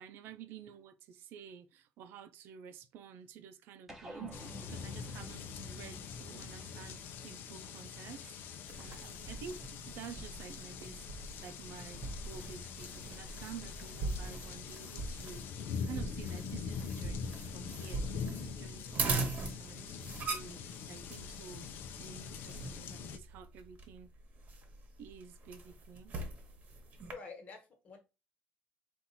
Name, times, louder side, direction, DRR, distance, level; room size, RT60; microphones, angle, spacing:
voice 1, 0.0-9.6 9.9-24.1 25.0-26.2, right 7 dB, 85° right, 0.5 m, -50 dB
sound 1, 3.9-8.6, equal, 10° right, 1.0 m, -52 dB
sound 2, 4.3-23.2, left 6 dB, 70° left, 0.6 m, -44 dB
sound 3, 8.7-27.1, right 3 dB, 45° right, 1.1 m, -42 dB
voice 2, 27.1-28.0, left 4 dB, 40° left, 1.4 m, -48 dB
4.2 x 2.5 x 4.0 m
cardioid pair, 145°, 4 cm